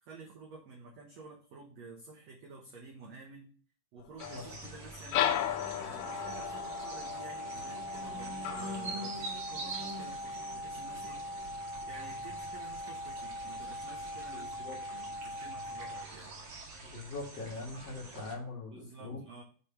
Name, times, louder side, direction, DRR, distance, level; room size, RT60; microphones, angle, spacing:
voice 1, 0.0-3.5 3.9-5.4 5.7-11.2 11.9-16.3 18.7-19.4, right 3 dB, 75° right, -1 dB, 1.6 m, -51 dB
sound 1, 4.2-9.3, left 11 dB, 80° left, 2.0 m, -35 dB
sound 2, 4.2-18.3, right 2 dB, 45° right, 2.4 m, -45 dB
sound 3, 6.0-16.0, equal, 65° left, 3.5 m, -41 dB
voice 2, 14.3-14.8 16.8-19.2, left 3 dB, 50° left, -3 dB, 2.4 m, -42 dB
7.0 x 3.2 x 5.7 m, 0.42 s
omnidirectional pair, 4.5 m